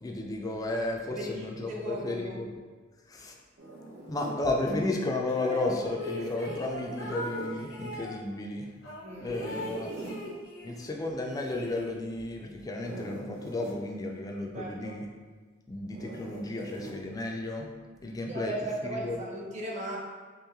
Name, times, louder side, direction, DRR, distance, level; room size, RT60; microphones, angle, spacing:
voice 1, 0.0-2.5 3.1-3.4 4.1-8.7 9.2-9.9 10.6-15.0 15.7-17.7 18.0-18.5 18.8-19.2, left 2 dB, 20° left, 1 dB, 0.3 m, -33 dB
voice 2, 1.1-2.4 9.0-9.3 14.5-15.0 18.3-20.0, right 1 dB, 35° right, -2 dB, 0.6 m, -37 dB
Zipper (clothing), 3.6-4.4 6.4-7.6 9.2-10.2 12.6-13.8 15.9-17.0, right 1 dB, 75° right, 0.8 m, -44 dB
sound 1, 5.3-8.2 8.8-10.8 11.1-12.2, equal, 70° left, 0.8 m, -39 dB
3.0 x 3.0 x 3.5 m, 1.5 s
head